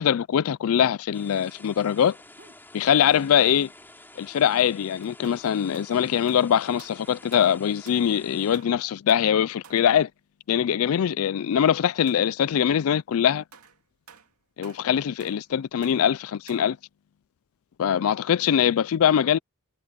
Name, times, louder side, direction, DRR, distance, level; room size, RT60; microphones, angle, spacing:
voice 1, 0.0-2.2 2.7-3.7 4.2-10.1 10.5-13.4 14.6-16.8 17.8-19.4, left 9 dB, 70° left, 0.4 m, -22 dB
sound 1, 1.1-8.6, left 2 dB, 10° left, 3.3 m, -49 dB
sound 2, 1.4-1.5 2.2-2.5 4.2-4.3 5.2-8.2 8.5-10.0 10.7-10.9 11.2-11.3 12.1-12.7 13.5-16.8, right 6 dB, 85° right, 2.4 m, -53 dB
sound 3, 2.3-2.7 3.1-3.8 4.1-7.7 8.5-9.1, right 2 dB, 45° right, 4.6 m, -60 dB
head